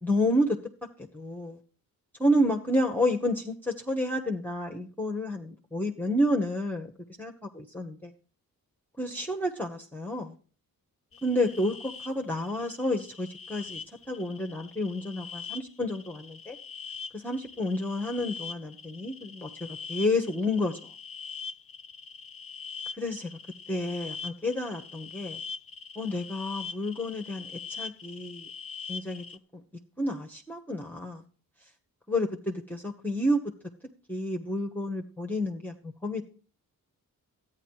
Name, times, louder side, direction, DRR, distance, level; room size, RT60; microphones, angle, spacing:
voice 1, 0.0-0.6 1.1-1.6 2.2-6.9 7.2-8.1 9.0-10.3 11.2-16.6 17.1-20.8 23.0-23.4 23.7-25.4 26.0-28.5 28.9-29.2 30.0-31.2 32.1-33.4 34.1-36.2, left 1 dB, 5° left, 4 dB, 1.2 m, -30 dB
sound 1, 11.1-29.4, left 5 dB, 40° left, 0.7 m, -42 dB
13.0 x 9.7 x 4.7 m, 0.40 s
cardioid pair, 65°, 36 cm